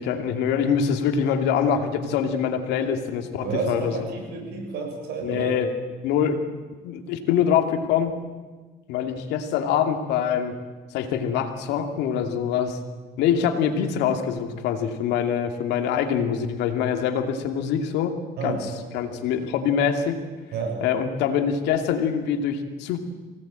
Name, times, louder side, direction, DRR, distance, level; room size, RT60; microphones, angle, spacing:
voice 1, 0.0-3.9 5.2-5.7 6.0-6.4 6.8-8.1 8.9-10.6 10.9-12.8 13.2-18.2 18.4-18.6 18.9-20.2 20.8-23.0, left 8 dB, 90° left, 6 dB, 2.5 m, -24 dB
voice 2, 3.4-5.5 18.4-18.9 20.5-20.8, right 4 dB, 70° right, 1 dB, 7.5 m, -30 dB
24.5 x 18.0 x 9.0 m, 1.3 s
cardioid pair, 110°, 17 cm